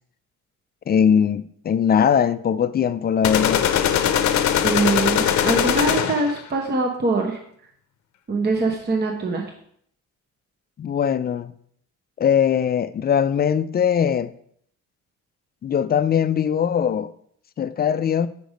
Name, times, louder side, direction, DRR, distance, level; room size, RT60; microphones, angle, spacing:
voice 1, 0.9-3.6 10.8-11.5 12.2-14.3 15.6-17.1 17.6-18.3, left 8 dB, 35° left, 0.4 m, -20 dB
sound 1, 3.2-6.4, left 9 dB, 70° left, 0.6 m, -20 dB
voice 2, 4.6-7.4 8.3-9.5, right 3 dB, 35° right, 1.0 m, -23 dB
5.1 x 4.7 x 5.2 m
cardioid pair, 90°, 30 cm